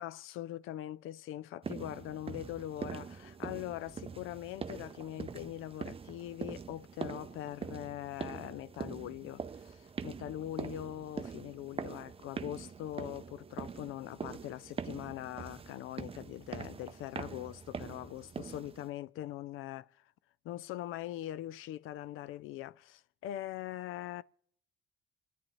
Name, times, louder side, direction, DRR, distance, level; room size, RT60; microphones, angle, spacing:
voice 1, 0.0-20.0 20.4-24.2, left 13 dB, 75° left, 0.5 m, -42 dB
sound 1, 1.6-18.9, right 6 dB, 25° right, 0.6 m, -43 dB
27.5 x 10.0 x 3.2 m
cardioid pair, 80°, 21 cm